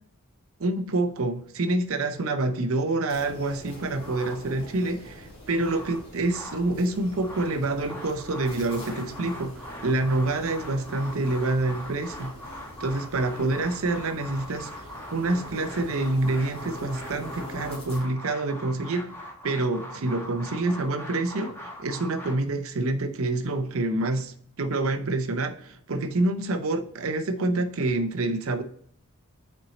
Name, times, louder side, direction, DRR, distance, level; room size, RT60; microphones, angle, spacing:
voice 1, 0.6-12.4 12.8-19.2 19.4-28.6, right 2 dB, 65° right, 0.7 m, -27 dB
sound 1, 3.1-18.0, equal, 30° left, 2.7 m, -43 dB
sound 2, 4.0-4.8 5.3-6.7 7.0-22.3, left 1 dB, 10° left, 1.3 m, -41 dB
6.1 x 4.4 x 3.9 m
head